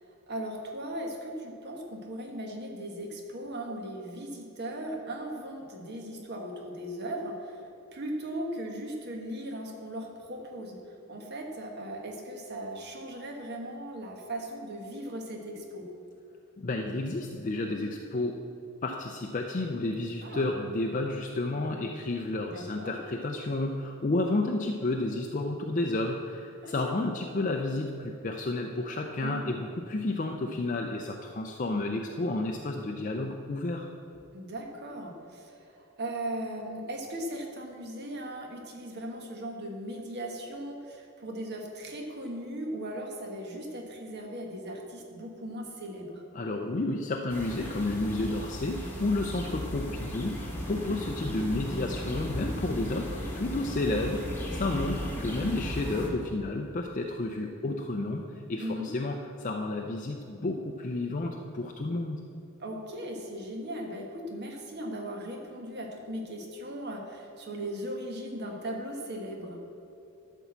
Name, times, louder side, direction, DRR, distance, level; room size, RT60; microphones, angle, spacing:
voice 1, 0.0-7.6 7.9-15.8 20.2-20.5 22.5-23.0 26.6-27.2 29.2-29.5 34.3-46.2 49.4-49.5 54.6-54.8 58.6-58.9 62.6-69.6, right 1 dB, 50° right, 1 dB, 1.4 m, -38 dB
voice 2, 16.6-18.4 18.8-33.9 46.3-62.2, left 2 dB, 35° left, 2 dB, 0.5 m, -31 dB
sound 1, 47.3-56.1, equal, 10° left, 1.4 m, -36 dB
12.0 x 4.6 x 7.3 m, 2.7 s
head